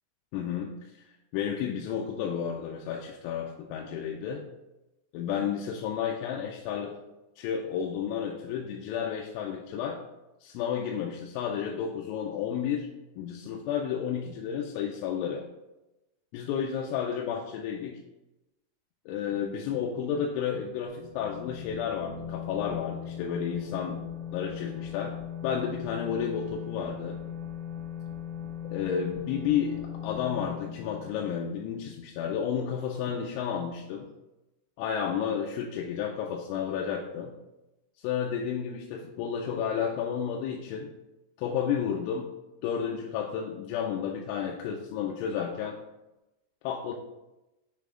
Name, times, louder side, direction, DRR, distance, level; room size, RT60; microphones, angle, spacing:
voice 1, 0.3-0.7 1.3-4.4 5.1-7.0 7.4-10.0 10.4-12.9 13.2-15.4 16.3-18.0 19.1-24.0 24.3-25.2 25.4-27.2 28.7-34.1 34.8-37.3 38.0-40.9 41.4-42.3 42.6-45.8 46.6-46.9, left 8 dB, 85° left, 0 dB, 2.9 m, -31 dB
sound 1, 20.9-32.4, left 9 dB, 45° right, 1.9 m, -39 dB
8.3 x 3.3 x 3.7 m, 0.97 s
omnidirectional pair, 5.8 m